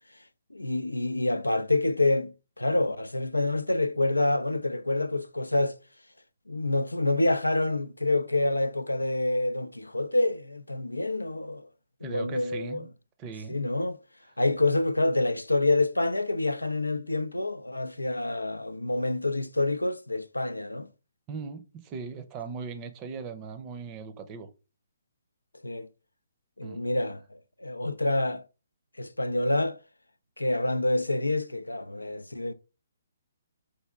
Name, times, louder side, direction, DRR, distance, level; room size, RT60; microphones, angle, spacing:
voice 1, 0.5-5.8 6.5-11.7 12.0-12.8 13.5-14.0 14.4-20.9 25.6-25.9 26.6-28.4 29.0-29.8 30.4-32.5, left 2 dB, 90° left, 0.4 m, -27 dB
voice 2, 12.0-12.9 13.2-13.6 21.3-24.5 26.6-26.8, right 5 dB, 25° right, 0.6 m, -39 dB
4.7 x 2.6 x 3.4 m
figure-of-eight pair, 135°, 0 cm